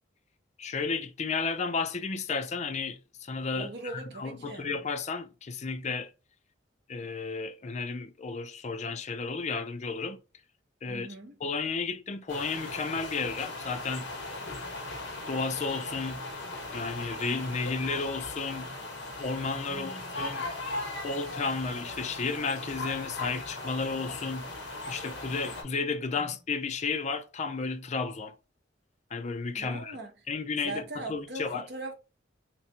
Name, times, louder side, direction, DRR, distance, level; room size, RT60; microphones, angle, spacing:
voice 1, 0.6-6.1 6.9-10.2 10.8-11.1 11.4-14.1 15.3-16.3 16.7-18.7 19.2-20.5 21.0-24.5 24.9-28.3 29.1-30.0 30.3-31.7, left 4 dB, 35° left, 0.4 m, -33 dB
voice 2, 3.5-4.7 10.9-11.4 19.7-20.1 26.1-26.4 29.6-30.1 30.6-31.9, right 2 dB, 60° right, 0.9 m, -40 dB
sound 1, 12.3-25.6, left 2 dB, 70° left, 1.1 m, -38 dB
3.3 x 3.0 x 2.8 m
head